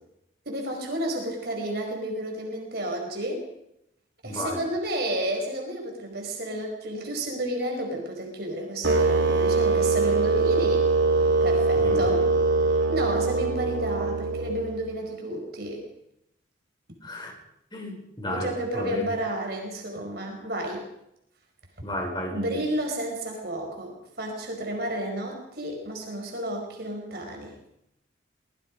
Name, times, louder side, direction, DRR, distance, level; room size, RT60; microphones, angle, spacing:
voice 1, 0.4-3.4 4.2-10.8 11.4-12.2 12.9-15.8 18.3-20.8 22.3-27.5, right 1 dB, 55° right, 1 dB, 5.0 m, -31 dB
voice 2, 4.2-4.6 11.7-12.3 17.0-17.3 17.7-19.1 21.8-22.6, left 1 dB, 25° left, 1 dB, 5.9 m, -33 dB
sound 1, 8.8-14.9, right 3 dB, 70° right, 3.1 m, -23 dB
26.0 x 20.5 x 5.2 m, 0.80 s
head